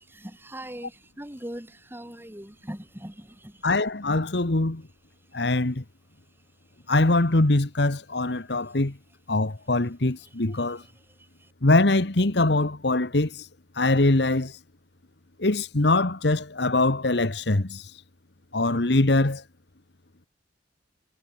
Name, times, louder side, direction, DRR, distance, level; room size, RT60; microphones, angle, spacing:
voice 1, 0.1-3.6 11.4-11.5, equal, 10° right, 3.4 m, -40 dB
voice 2, 3.6-4.8 5.3-5.8 6.9-8.9 9.3-10.8 11.6-13.5 13.8-14.6 15.4-17.9 18.5-19.4, left 2 dB, 65° left, 1.4 m, -23 dB
head